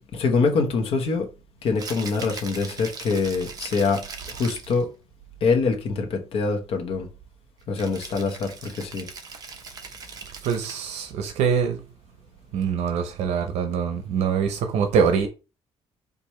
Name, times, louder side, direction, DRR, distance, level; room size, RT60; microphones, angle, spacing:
voice 1, 0.1-1.3 1.6-4.9 5.4-7.1 7.7-9.1, left 4 dB, 60° left, 1.0 m, -24 dB
Rattle (instrument), 1.7-4.8 7.8-11.0, right 4 dB, 35° right, 0.8 m, -40 dB
voice 2, 10.4-11.8 12.5-15.3, right 6 dB, 85° right, 0.6 m, -24 dB
4.7 x 2.6 x 4.2 m
cardioid pair, 145°, 11 cm